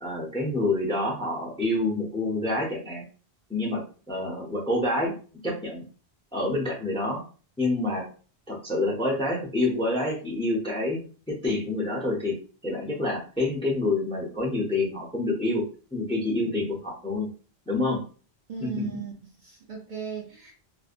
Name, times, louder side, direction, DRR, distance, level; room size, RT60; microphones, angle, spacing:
voice 1, 0.0-3.0 3.5-3.8 4.1-5.1 5.4-5.8 6.3-7.2 7.6-8.0 8.5-11.0 11.3-12.3 12.6-15.6 15.9-17.3 17.7-18.0 18.6-18.9, left 2 dB, 5° left, -3 dB, 0.5 m, -27 dB
voice 2, 18.5-19.1 19.4-20.5, right 7 dB, 55° right, -1 dB, 0.6 m, -36 dB
2.6 x 2.1 x 2.5 m, 0.37 s
omnidirectional pair, 1.1 m